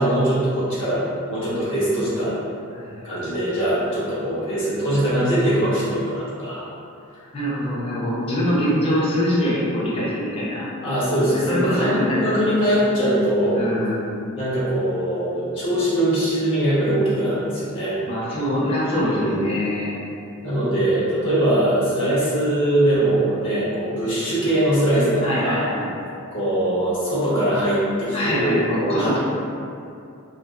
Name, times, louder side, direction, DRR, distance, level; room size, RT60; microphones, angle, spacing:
voice 1, 0.0-2.4 3.0-6.6 10.8-13.7 14.4-18.0 19.0-19.5 20.4-25.6 26.3-28.6 29.0-29.2, right 1 dB, 60° left, -9 dB, 0.9 m, -22 dB
voice 2, 2.7-3.3 7.3-10.6 11.3-12.2 12.7-12.8 13.5-14.3 18.0-20.0 25.2-25.9 28.1-29.2, equal, 25° left, -7 dB, 0.5 m, -24 dB
2.5 x 2.2 x 2.3 m, 2.5 s
head